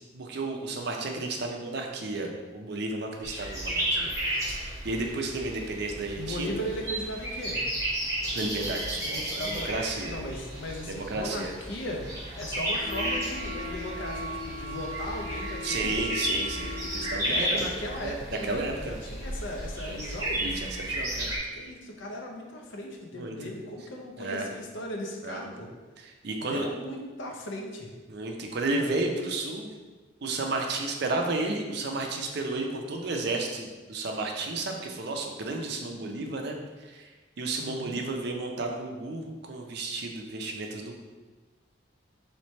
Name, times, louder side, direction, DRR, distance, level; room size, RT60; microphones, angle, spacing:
voice 1, 0.1-4.1 4.5-6.6 8.3-10.1 10.9-11.5 15.6-17.7 18.0-18.2 18.4-18.9 19.9-20.0 20.4-21.3 23.1-23.3 24.2-24.5 25.2-25.5 26.0-26.7 28.1-29.7 30.2-36.6 36.9-37.1 37.4-41.0, right 2 dB, 55° right, 2 dB, 0.5 m, -32 dB
sound 1, 3.2-21.4, right 1 dB, 15° right, 0.9 m, -33 dB
voice 2, 6.1-7.6 9.0-9.7 10.0-16.1 17.3-20.4 21.6-25.7 26.4-27.9 28.7-28.9 37.6-38.0, left 1 dB, 65° left, 1 dB, 0.6 m, -37 dB
sound 2, 12.8-17.6, left 1 dB, 25° left, 0.3 m, -38 dB
3.2 x 3.2 x 4.2 m, 1.3 s
head